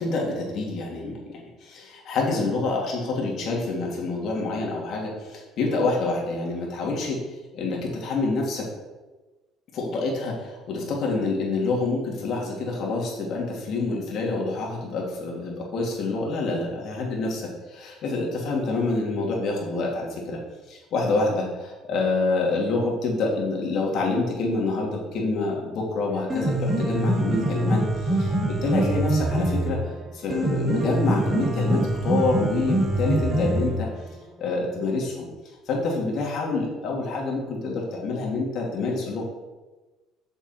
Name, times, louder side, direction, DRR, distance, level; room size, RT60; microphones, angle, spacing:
voice 1, 0.0-7.2 7.5-8.7 9.7-17.4 17.7-20.4 20.7-29.8 30.1-33.9 34.4-35.3 35.7-39.2, left 3 dB, 55° left, -2 dB, 2.8 m, -27 dB
Piano, 26.1-34.1, right 1 dB, 20° right, 2.5 m, -24 dB
8.0 x 6.8 x 4.6 m, 1.2 s
cardioid pair, 110°, 0 cm